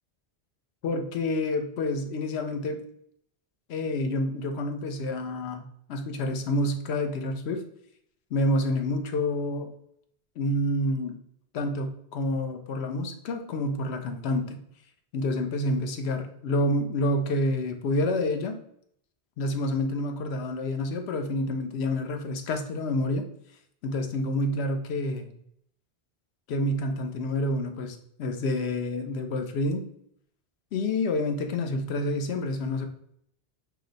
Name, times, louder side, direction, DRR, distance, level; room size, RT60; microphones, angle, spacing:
voice 1, 0.8-2.8 3.7-7.6 8.3-9.7 10.4-11.2 11.5-14.6 15.1-18.6 19.4-23.2 23.8-25.3 26.5-29.9 30.7-32.9, left 1 dB, 85° left, 5 dB, 0.9 m, -28 dB
4.7 x 2.1 x 3.9 m, 0.70 s
omnidirectional pair, 1.1 m